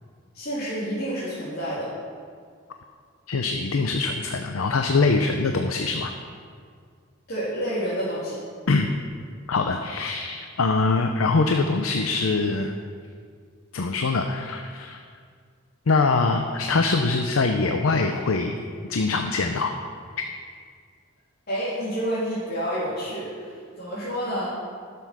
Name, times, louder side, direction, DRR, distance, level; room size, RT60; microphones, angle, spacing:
voice 1, 0.3-1.9 7.3-8.4 21.5-24.5, equal, 50° left, -11 dB, 3.3 m, -29 dB
voice 2, 3.3-6.1 8.7-8.9 9.5-12.7 13.7-15.0 15.9-18.6 18.9-19.7, left 3 dB, 90° left, 5 dB, 0.6 m, -23 dB
11.5 x 7.0 x 6.1 m, 2.1 s
head